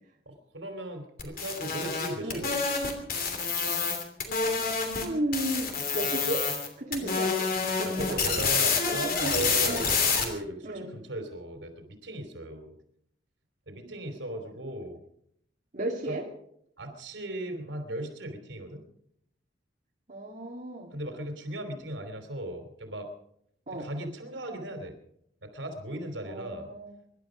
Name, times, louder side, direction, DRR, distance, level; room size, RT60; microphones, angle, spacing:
voice 1, 0.2-2.7 7.8-12.7 13.7-15.0 16.0-16.2 16.8-18.8 20.9-23.1 23.8-24.9 25.4-26.7, right 1 dB, 80° right, 5 dB, 3.2 m, -37 dB
sound 1, 1.2-5.1 5.3-6.7 6.9-10.2, left 5 dB, 50° left, 3.0 m, -28 dB
voice 2, 5.0-6.5 6.8-7.5 7.7-8.2 8.9-9.4 9.6-9.9 10.6-10.9 15.7-16.2 20.1-21.0 23.7-23.9 26.3-27.0, right 1 dB, 45° right, -2 dB, 2.4 m, -34 dB
24.5 x 11.5 x 5.1 m, 0.72 s
head